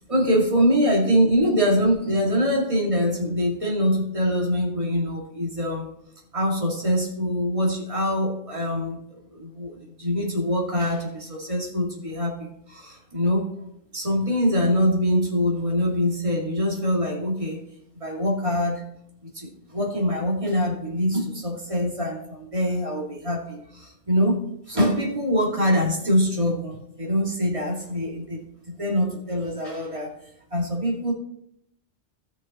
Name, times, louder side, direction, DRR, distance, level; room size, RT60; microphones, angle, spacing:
voice 1, 0.0-5.9 6.3-13.5 13.9-17.6 18.0-18.8 19.2-24.4 24.7-30.1 30.5-31.1, equal, 30° right, -2 dB, 2.3 m, -24 dB
15.5 x 6.3 x 3.0 m, 0.74 s
omnidirectional pair, 1.2 m